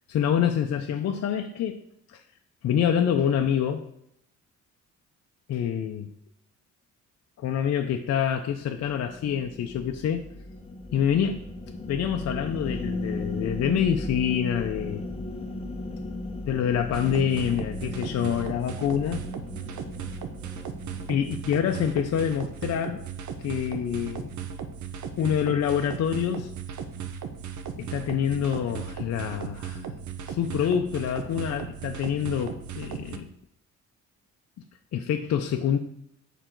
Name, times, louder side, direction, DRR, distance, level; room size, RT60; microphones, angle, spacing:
voice 1, 0.1-1.8 2.1-2.2 2.6-3.8 5.5-6.1 7.4-10.3 10.9-11.4 11.9-15.0 16.5-19.2 21.1-23.0 23.4-24.3 25.2-26.5 27.8-29.8 30.3-33.3 34.9-35.8, left 8 dB, 55° left, 4 dB, 0.6 m, -26 dB
sound 1, 8.7-22.3, left 2 dB, 20° left, 0.8 m, -37 dB
sound 2, 16.9-33.2, right 7 dB, 70° right, 0.8 m, -37 dB
6.7 x 5.0 x 4.5 m, 0.74 s
cardioid pair, 90°, 30 cm